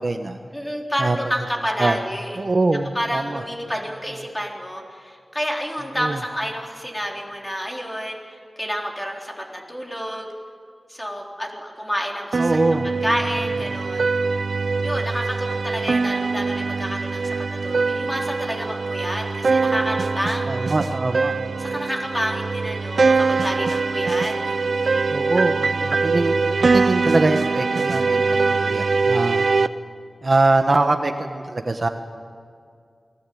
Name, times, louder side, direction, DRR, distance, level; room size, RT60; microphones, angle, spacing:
voice 1, 0.0-0.4 1.0-1.2 1.8-2.0 2.4-3.4 6.0-6.2 12.3-12.9 20.5-21.8 25.1-29.4 30.2-31.9, right 2 dB, 45° right, 6 dB, 1.3 m, -23 dB
voice 2, 0.5-2.4 2.9-10.3 10.9-14.0 14.8-20.7 21.6-24.6, equal, 10° left, 0 dB, 3.9 m, -29 dB
sound 1, 12.3-29.7, right 4 dB, 70° right, 0.7 m, -22 dB
28.0 x 20.0 x 8.6 m, 2.2 s
wide cardioid pair, 100°, 0 cm